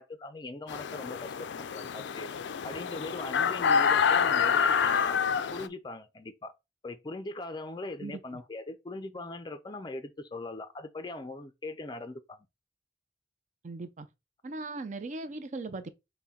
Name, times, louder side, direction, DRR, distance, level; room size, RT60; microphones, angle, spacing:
voice 1, 0.0-2.3 2.6-5.2 5.5-6.5 6.8-12.4, left 2 dB, 25° left, 0.4 m, -40 dB
sound 1, 0.7-5.7, left 6 dB, 90° left, 0.4 m, -27 dB
voice 2, 8.0-8.4 13.6-14.1 14.4-15.9, right 3 dB, 45° right, 0.5 m, -39 dB
6.0 x 2.2 x 4.1 m
head